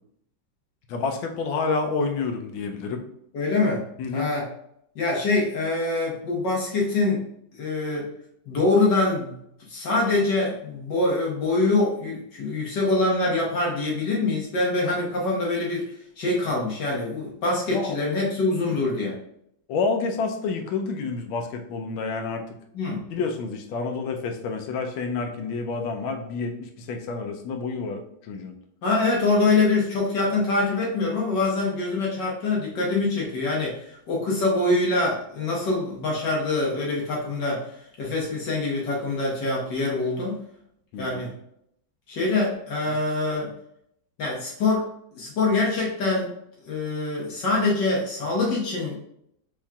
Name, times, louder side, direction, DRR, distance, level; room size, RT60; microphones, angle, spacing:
voice 1, 0.9-3.0 4.0-4.3 17.7-18.0 18.8-18.9 19.7-22.4 23.1-28.6 40.9-41.2, left 4 dB, 85° left, 4 dB, 1.4 m, -29 dB
voice 2, 3.3-3.8 4.1-4.5 4.9-7.3 7.6-8.1 8.5-9.4 9.7-19.2 22.7-23.0 28.8-40.4 41.0-41.3 42.1-43.5 44.2-44.9 45.1-46.3 46.7-49.0, left 3 dB, 65° left, -3 dB, 1.7 m, -24 dB
6.2 x 3.6 x 2.3 m, 0.74 s
omnidirectional pair, 2.1 m